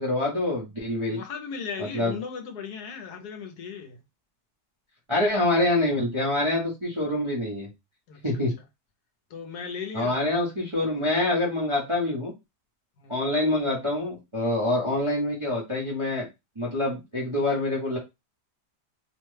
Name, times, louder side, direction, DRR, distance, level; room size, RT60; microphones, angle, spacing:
voice 1, 0.0-1.2 1.8-2.2 5.1-7.7 8.2-8.5 9.9-12.3 13.1-16.3 16.6-18.0, left 2 dB, 30° right, 0.6 m, -26 dB
voice 2, 1.1-4.0 8.1-8.2 9.3-10.3 10.8-11.0 13.0-13.1, left 6 dB, 70° left, 1.1 m, -37 dB
3.0 x 2.2 x 3.1 m
omnidirectional pair, 1.9 m